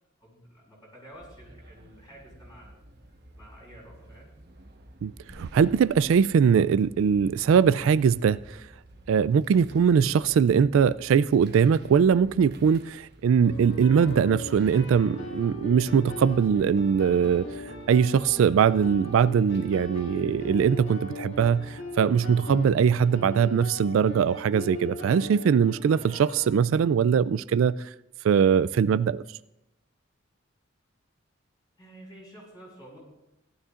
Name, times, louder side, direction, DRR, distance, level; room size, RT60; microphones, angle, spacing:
voice 1, 0.2-2.8 3.3-4.3 31.8-33.0, right 1 dB, 20° left, 5.3 m, -50 dB
sound 1, 1.1-20.8, right 1 dB, 50° right, 1.1 m, -50 dB
voice 2, 5.0-8.6 9.1-17.5 17.9-27.9 28.2-29.2, right 7 dB, 80° right, 0.3 m, -22 dB
sound 2, 13.4-26.5, left 1 dB, 60° left, 1.9 m, -39 dB
17.5 x 12.5 x 2.5 m
head